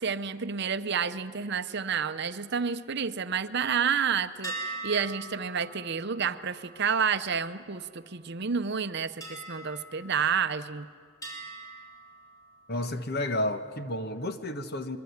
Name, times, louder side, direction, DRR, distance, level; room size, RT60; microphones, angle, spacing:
voice 1, 0.0-10.9, right 6 dB, 50° right, 11 dB, 0.7 m, -30 dB
sound 1, 4.4-8.1 9.2-10.8 11.2-12.9, right 2 dB, 15° left, 5.8 m, -43 dB
voice 2, 12.7-15.0, left 1 dB, 45° left, 10 dB, 1.2 m, -31 dB
24.5 x 22.5 x 9.5 m, 2.1 s
head